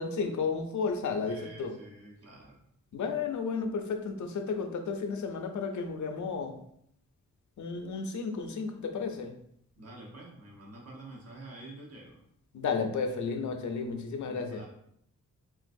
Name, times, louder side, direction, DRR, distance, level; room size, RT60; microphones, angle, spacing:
voice 1, 0.0-1.8 2.9-6.6 7.6-9.4 12.5-14.6, left 5 dB, 60° left, 5 dB, 0.5 m, -33 dB
voice 2, 1.3-2.6 9.8-12.2 14.2-14.7, right 1 dB, 50° right, -2 dB, 0.9 m, -48 dB
3.8 x 2.4 x 2.5 m, 0.71 s
wide cardioid pair, 100°, 33 cm